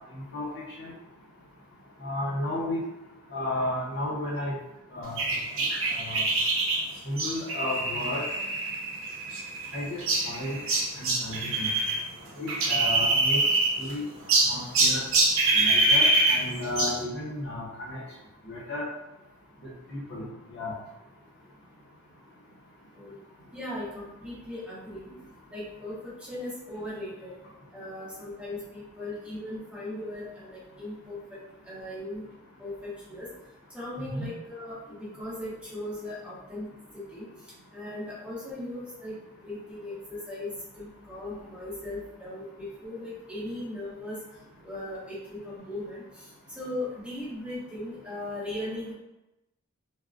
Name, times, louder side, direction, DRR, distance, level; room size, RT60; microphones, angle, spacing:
voice 1, 0.1-0.5 0.8-0.9 2.0-2.8 3.3-4.5 4.9-5.2 5.9-6.2 7.0-8.3 9.7-10.6 11.0-11.7 12.4-13.4 13.8-14.0 14.5-15.0 15.5-18.0 18.5-18.9 19.9-20.3 20.5-20.7 34.1-34.3, left 1 dB, 55° left, -5 dB, 0.8 m, -33 dB
sound 1, 5.2-12.0 12.3-13.9 14.3-17.0, right 2 dB, 65° right, 0.7 m, -25 dB
voice 2, 23.5-25.1 25.5-27.4 27.7-32.2 32.6-33.3 33.7-36.6 37.1-37.2 37.7-39.1 39.4-44.2 44.6-46.3 46.6-48.9, left 1 dB, 5° right, -9 dB, 0.9 m, -38 dB
3.6 x 2.1 x 2.5 m, 0.93 s
head